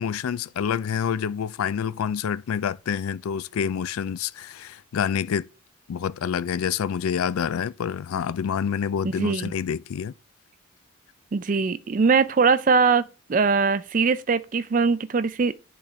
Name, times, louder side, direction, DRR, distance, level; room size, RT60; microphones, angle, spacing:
voice 1, 0.0-5.5 5.9-10.1, left 7 dB, 85° left, 0.4 m, -27 dB
voice 2, 9.2-9.5 11.3-15.5, right 5 dB, 40° right, 0.4 m, -21 dB
10.5 x 4.3 x 3.2 m
head